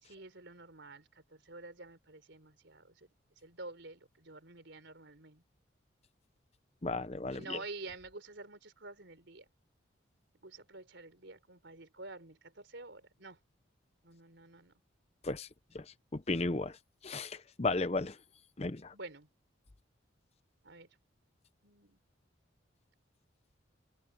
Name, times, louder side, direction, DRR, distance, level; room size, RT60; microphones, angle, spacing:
voice 1, 0.0-3.1 3.4-5.4 7.3-9.5 10.4-13.4 14.0-14.7 18.9-19.3 20.6-20.9 21.6-22.0, right 2 dB, 70° right, 3.8 m, -49 dB
voice 2, 6.8-7.6 15.2-15.5 15.7-15.8 16.1-16.7 17.0-18.2 18.6-18.9, left 3 dB, 30° left, 0.7 m, -34 dB
open air
head